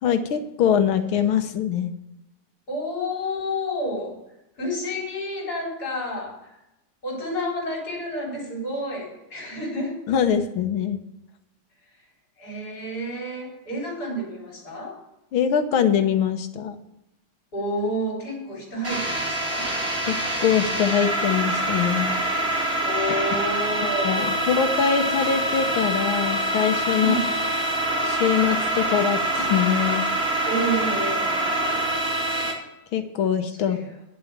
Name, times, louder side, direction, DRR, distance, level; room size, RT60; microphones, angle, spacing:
voice 1, 0.0-1.9 10.1-11.0 15.3-16.8 20.1-22.2 24.0-27.2 28.0-30.1 32.9-33.8, left 8 dB, 85° left, 8 dB, 1.9 m, -23 dB
voice 2, 2.7-4.2 4.6-6.5 7.0-10.0 12.4-15.0 17.5-19.7 22.8-24.4 27.0-27.3 30.5-31.6 33.5-33.9, equal, 50° left, -1 dB, 4.7 m, -30 dB
sound 1, 18.8-32.5, right 1 dB, 45° right, 2.9 m, -25 dB
10.5 x 7.5 x 7.3 m, 0.90 s
omnidirectional pair, 2.2 m